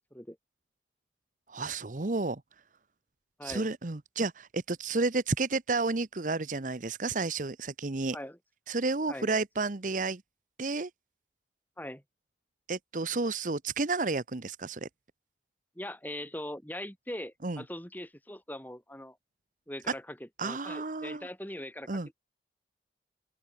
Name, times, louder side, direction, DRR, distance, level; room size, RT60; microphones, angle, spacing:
voice 1, 1.5-2.4 3.4-8.2 8.7-10.2 10.6-10.9 12.7-14.9 17.4-17.6 20.4-21.3 21.9-22.1, right 3 dB, 45° right, 0.9 m, -31 dB
voice 2, 15.8-19.2 19.7-21.9, left 1 dB, 10° left, 8.0 m, -41 dB
open air
head